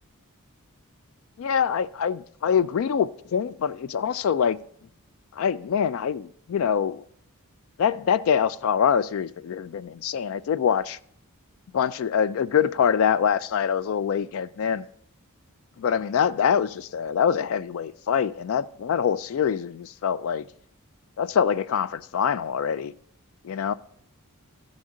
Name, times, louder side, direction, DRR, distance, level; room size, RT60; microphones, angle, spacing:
voice 1, 1.4-4.6 5.3-7.0 7.8-11.0 11.7-14.9 15.8-20.5 21.2-22.9 23.4-23.7, left 7 dB, 65° left, 0.3 m, -24 dB
15.5 x 5.3 x 3.7 m
head